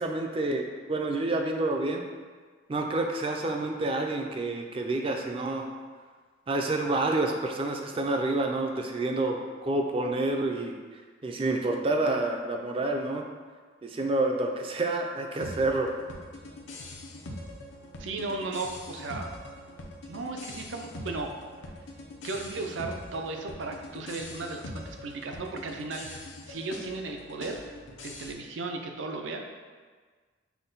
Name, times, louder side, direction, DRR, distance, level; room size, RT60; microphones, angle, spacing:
voice 1, 0.0-2.0 2.7-5.7 6.5-13.3 13.8-15.9 18.3-18.4, right 2 dB, 30° right, 3 dB, 0.4 m, -28 dB
sound 1, 15.4-28.3, left 1 dB, 80° left, 0.6 m, -43 dB
voice 2, 18.0-19.3 20.1-21.3 22.2-27.6 28.0-29.4, right 3 dB, 85° right, 3 dB, 0.5 m, -35 dB
5.7 x 2.2 x 3.9 m, 1.5 s
head